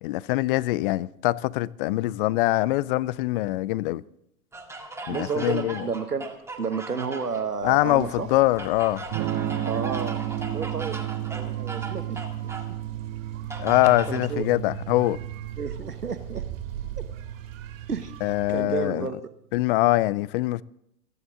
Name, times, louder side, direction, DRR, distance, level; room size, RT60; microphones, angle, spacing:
voice 1, 0.0-4.0 5.1-5.9 7.6-9.0 13.6-15.2 18.2-19.1 19.5-20.6, left 18 dB, 40° left, 0.5 m, -23 dB
sound 1, 4.5-7.5 8.6-12.7 13.5-14.3, right 2 dB, 5° right, 1.9 m, -38 dB
voice 2, 5.1-6.3 6.6-8.3 9.6-12.2 14.1-14.5 15.6-16.4 17.0-17.1 17.9-18.1 18.5-19.2, right 5 dB, 90° right, 1.3 m, -31 dB
sound 2, 7.6-18.7, right 9 dB, 60° right, 2.4 m, -42 dB
Electric guitar / Strum, 9.1-18.9, right 13 dB, 35° right, 1.6 m, -33 dB
28.5 x 10.0 x 3.8 m
figure-of-eight pair, 95°, 45 cm